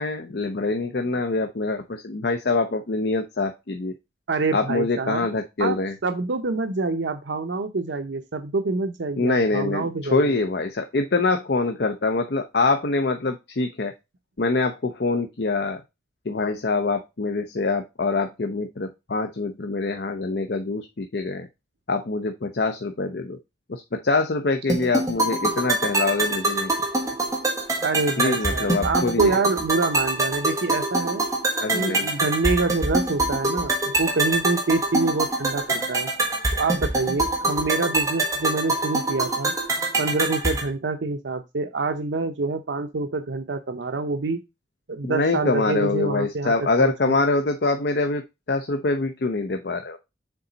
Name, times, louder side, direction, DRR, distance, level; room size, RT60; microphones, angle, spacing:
voice 1, 0.0-3.9 4.5-5.9 9.2-13.9 14.4-15.8 16.3-21.5 21.9-23.4 23.7-26.7 28.2-29.4 31.6-32.1 45.0-48.2 48.5-50.0, left 3 dB, 60° left, 6 dB, 0.6 m, -24 dB
voice 2, 4.3-5.3 5.6-5.8 6.0-10.4 27.8-31.2 31.7-33.7 34.0-36.1 36.5-39.5 40.0-44.4 44.9-47.2, right 3 dB, 85° right, 7 dB, 0.7 m, -26 dB
sound 1, 24.7-40.7, right 2 dB, 20° right, 1.5 m, -25 dB
6.9 x 4.0 x 4.0 m, 0.24 s
head